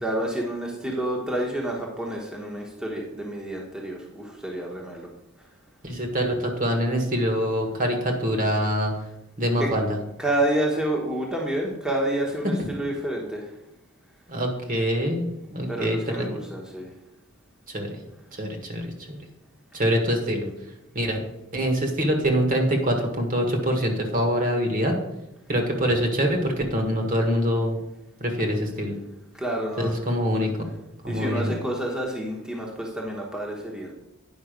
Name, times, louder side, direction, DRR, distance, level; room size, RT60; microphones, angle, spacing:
voice 1, 0.0-5.1 9.6-9.7 10.2-13.5 15.7-16.9 29.3-30.0 31.1-33.9, right 1 dB, 5° right, -2 dB, 1.1 m, -29 dB
voice 2, 5.8-8.9 9.4-10.0 14.3-16.3 17.7-18.0 18.4-19.2 19.7-20.5 20.9-21.2 21.5-24.9 25.5-27.8 28.2-28.9 29.8-30.5 31.0-31.5, equal, 40° right, 3 dB, 1.4 m, -24 dB
9.5 x 5.5 x 5.1 m, 0.88 s
head